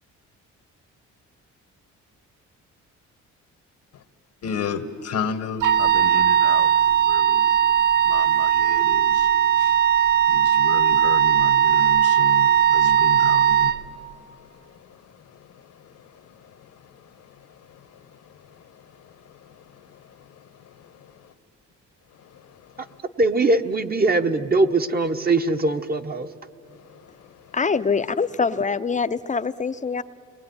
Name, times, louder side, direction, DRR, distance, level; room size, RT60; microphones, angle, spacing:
voice 1, 4.4-7.5 8.0-9.3 9.6-9.8 10.3-20.2 21.1-21.3 22.1-23.0 26.7-27.6, left 7 dB, 70° left, 1.3 m, -35 dB
Wind instrument woodwind instrument, 5.6-13.8, right 10 dB, 80° right, 0.8 m, -18 dB
voice 2, 23.2-26.3, right 2 dB, 30° right, 1.0 m, -21 dB
voice 3, 27.5-30.0, left 5 dB, 25° left, 0.6 m, -24 dB
29.5 x 20.5 x 9.5 m
cardioid pair, 90°, 30 cm